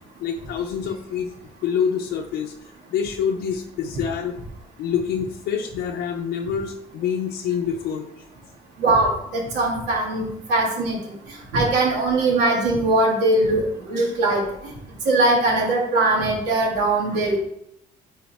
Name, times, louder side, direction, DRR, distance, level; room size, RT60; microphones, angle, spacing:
voice 1, 0.2-1.3 1.6-2.5 2.9-4.4 4.8-8.0, left 7 dB, 75° left, 1 dB, 0.7 m, -26 dB
voice 2, 8.8-11.1 11.5-14.4 15.1-17.4, right 2 dB, 85° right, -2 dB, 2.4 m, -21 dB
9.2 x 4.2 x 3.6 m, 0.76 s
cardioid pair, 110°, 17 cm